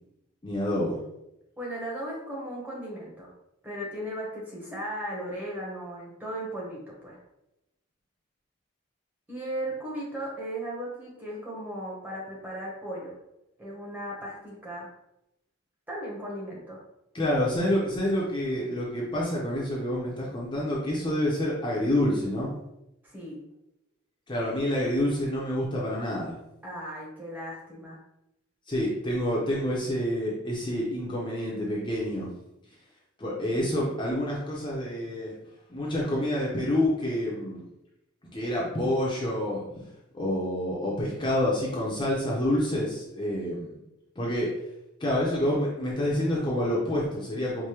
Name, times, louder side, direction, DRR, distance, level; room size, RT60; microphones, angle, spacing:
voice 1, 0.4-1.0 17.1-22.5 24.3-26.4 28.7-32.3 33.2-35.3 35.7-37.6 38.3-39.8 40.1-43.8 44.2-44.5 45.0-47.7, left 1 dB, 25° left, -4 dB, 0.6 m, -28 dB
voice 2, 1.6-3.3 3.6-7.2 9.3-13.2 13.6-14.9 15.9-16.8 23.0-23.4 26.6-28.0, right 1 dB, 10° right, -5 dB, 0.8 m, -36 dB
4.7 x 2.1 x 2.9 m, 0.85 s
head